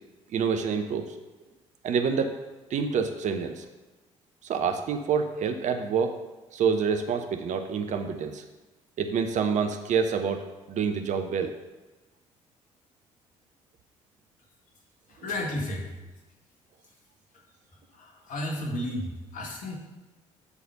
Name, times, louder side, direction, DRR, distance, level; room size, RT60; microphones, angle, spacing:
voice 1, 0.3-1.1 1.8-2.3 2.7-3.6 4.4-6.2 6.5-8.4 9.0-11.5, right 6 dB, 45° right, 6 dB, 0.7 m, -27 dB
voice 2, 15.1-15.9 17.9-19.7, left 1 dB, 50° left, 0 dB, 1.8 m, -33 dB
7.2 x 4.1 x 6.6 m, 1.1 s
figure-of-eight pair, 45°, 17 cm